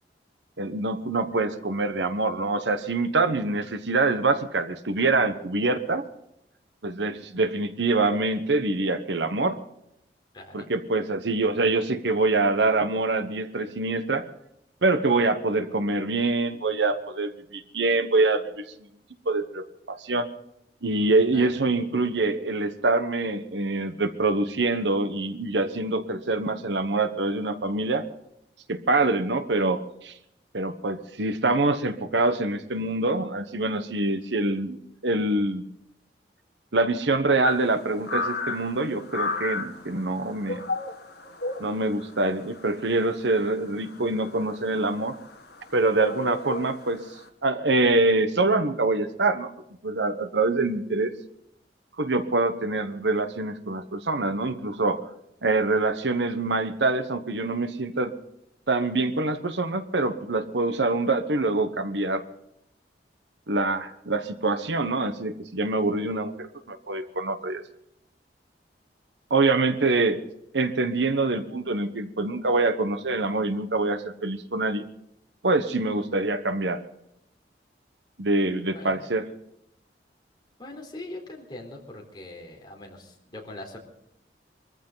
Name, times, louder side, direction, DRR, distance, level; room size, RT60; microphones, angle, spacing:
voice 1, 0.6-6.0 6.8-9.6 10.5-14.2 14.8-18.6 19.3-20.3 20.8-28.0 28.7-30.1 30.5-34.8 35.0-35.6 36.7-40.7 41.6-45.1 45.7-47.0 47.4-49.5 49.8-51.1 52.0-55.0 55.4-58.1 58.7-62.2 63.5-67.6 69.3-70.2 70.5-74.9 75.4-76.8 78.2-79.3, right 2 dB, 90° right, 11 dB, 1.2 m, -25 dB
voice 2, 10.3-10.7 21.3-21.6 78.7-79.0 80.6-83.8, left 2 dB, 25° left, 0 dB, 4.0 m, -42 dB
sound 1, 37.4-47.3, left 3 dB, 70° left, 1.9 m, -35 dB
23.5 x 14.5 x 4.0 m, 0.79 s
head